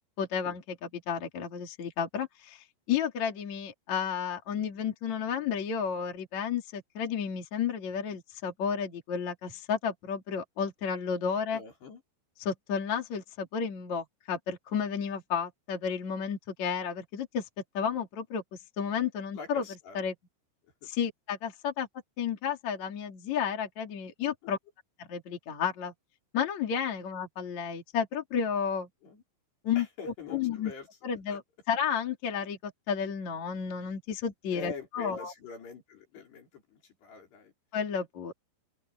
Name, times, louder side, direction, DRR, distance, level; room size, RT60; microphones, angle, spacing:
voice 1, 0.2-11.6 12.4-17.5 17.7-18.4 18.8-19.6 19.9-20.1 20.8-21.9 22.2-24.6 25.0-25.9 26.3-28.9 29.6-30.7 31.0-31.4 31.7-35.3 37.7-38.3, left 7 dB, 45° left, 3.7 m, -32 dB
voice 2, 11.5-12.0 19.3-20.0 20.8-20.9 29.0-29.2 29.8-30.9 31.3-31.4 34.5-37.5, left 5 dB, 65° left, 7.1 m, -45 dB
open air
omnidirectional pair, 5.3 m